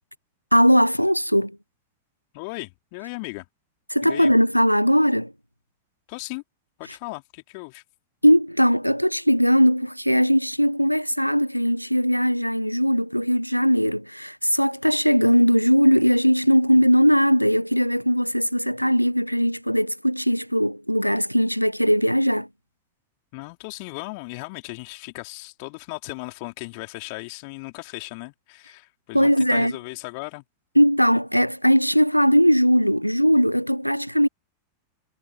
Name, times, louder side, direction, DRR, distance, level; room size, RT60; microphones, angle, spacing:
voice 1, 0.5-1.6 3.9-5.3 8.2-22.5 29.1-29.7 30.8-34.3, equal, 90° left, 0.4 m, -19 dB
voice 2, 2.3-3.5 4.0-4.3 6.1-6.4 6.8-7.8 23.3-30.4, left 32 dB, 45° left, 3.7 m, -36 dB
figure-of-eight pair, 90°, 0 cm